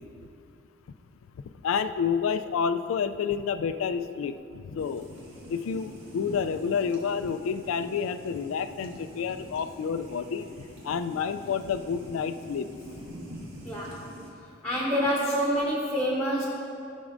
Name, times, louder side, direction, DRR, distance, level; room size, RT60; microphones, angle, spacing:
voice 1, 1.6-5.1 5.5-10.4 10.8-12.7, left 6 dB, 90° left, 11 dB, 0.3 m, -29 dB
sound 1, 4.8-14.3, equal, 75° right, 1.6 m, -45 dB
voice 2, 13.6-14.0 14.6-16.4, equal, 10° left, -5 dB, 1.0 m, -27 dB
14.0 x 6.2 x 2.5 m, 2.5 s
head